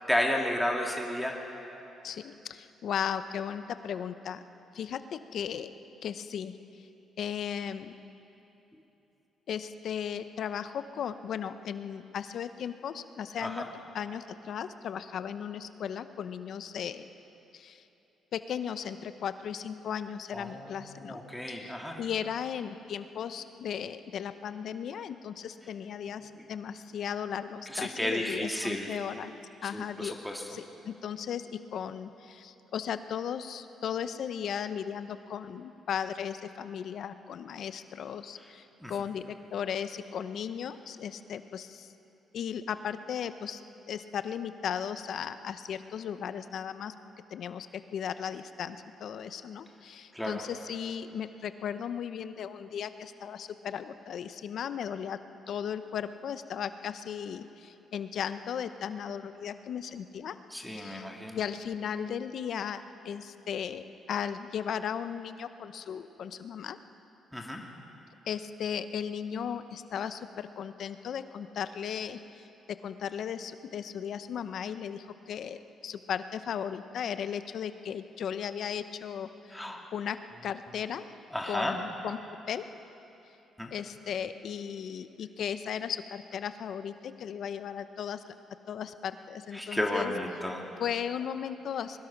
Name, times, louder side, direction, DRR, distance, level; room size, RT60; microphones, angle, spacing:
voice 1, 0.1-1.4 13.4-13.6 20.3-22.0 27.7-29.0 29.7-30.4 38.8-38.9 50.1-50.4 60.5-61.4 67.3-67.6 79.5-79.8 81.3-81.7 83.6-83.7 89.5-90.7, left 1 dB, ahead, 0 dB, 2.1 m, -32 dB
voice 2, 2.0-4.4 4.7-5.7 6.0-6.5 6.8-6.9 7.2-8.0 9.5-13.6 13.9-17.0 17.5-17.8 18.3-21.2 21.5-29.3 29.6-30.1 30.5-41.9 42.3-43.6 43.9-46.9 47.3-47.7 47.9-55.2 55.5-60.4 60.7-61.1 61.3-66.8 68.3-79.6 79.9-81.1 81.5-82.2 82.5-82.7 83.7-88.2 88.7-90.1 90.8-92.0, left 8 dB, 65° left, 11 dB, 0.8 m, -36 dB
22.0 x 20.0 x 6.0 m, 3.0 s
cardioid pair, 90°, 0 cm